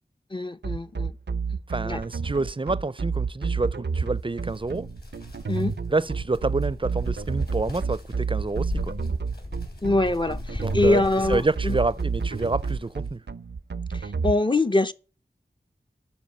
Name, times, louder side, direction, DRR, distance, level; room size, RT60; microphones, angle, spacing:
voice 1, 0.3-1.1 1.8-2.0 5.5-5.7 9.8-11.8 13.9-14.9, left 2 dB, 25° left, 0.6 m, -24 dB
sound 1, 0.6-14.3, right 5 dB, 80° right, 0.5 m, -29 dB
voice 2, 1.7-4.9 5.9-8.9 10.6-11.0 11.3-13.2, right 3 dB, 30° right, 0.5 m, -28 dB
sound 2, 3.9-13.1, left 1 dB, 65° left, 3.9 m, -39 dB
11.0 x 4.6 x 7.3 m
wide cardioid pair, 40°, 18 cm